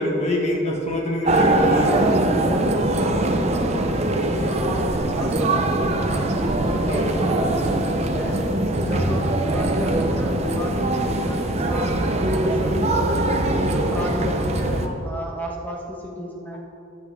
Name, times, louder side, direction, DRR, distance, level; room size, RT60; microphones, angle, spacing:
voice 1, 0.0-2.2 4.7-4.8 6.9-7.1 8.9-9.1 13.2-13.3 13.5-13.6 14.2-14.3 14.8-14.9, left 1 dB, 35° left, -1 dB, 1.7 m, -25 dB
sound 1, 1.2-14.9, right 1 dB, 30° right, 0.7 m, -22 dB
voice 2, 4.0-6.3 6.7-8.3 8.7-12.0 12.3-16.6, equal, 10° left, -2 dB, 1.4 m, -32 dB
14.5 x 9.7 x 3.5 m, 2.8 s
head